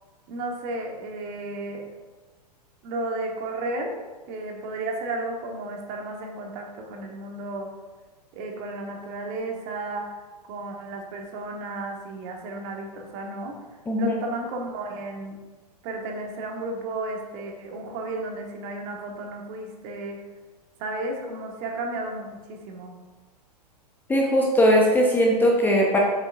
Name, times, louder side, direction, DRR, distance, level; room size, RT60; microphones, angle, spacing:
voice 1, 0.3-1.8 2.8-4.0 4.3-7.7 8.3-10.1 10.5-13.6 14.0-15.4 15.8-20.2 20.8-23.0, right 2 dB, 35° right, 1 dB, 1.3 m, -33 dB
voice 2, 24.1-26.0, equal, 10° left, 0 dB, 0.8 m, -19 dB
7.1 x 7.0 x 2.6 m, 1.2 s
figure-of-eight pair, 100°, 21 cm